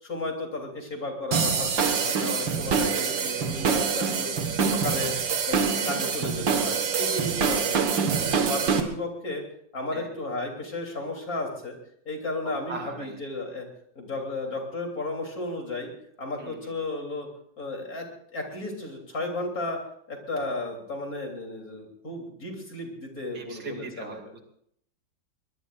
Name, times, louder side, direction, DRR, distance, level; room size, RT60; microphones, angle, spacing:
voice 1, 0.0-4.3 4.6-5.1 5.5-8.0 8.2-9.4 9.7-11.8 12.1-13.7 14.0-15.9 16.2-17.3 17.6-18.1 18.3-19.8 20.1-24.3, left 2 dB, 50° left, 1 dB, 3.9 m, -34 dB
sound 1, 1.3-8.8, right 6 dB, 90° right, 2.2 m, -25 dB
voice 2, 12.4-13.2 16.4-16.5 23.3-24.4, right 3 dB, 70° right, 3 dB, 3.2 m, -39 dB
23.0 x 21.0 x 2.6 m, 0.67 s
omnidirectional pair, 2.0 m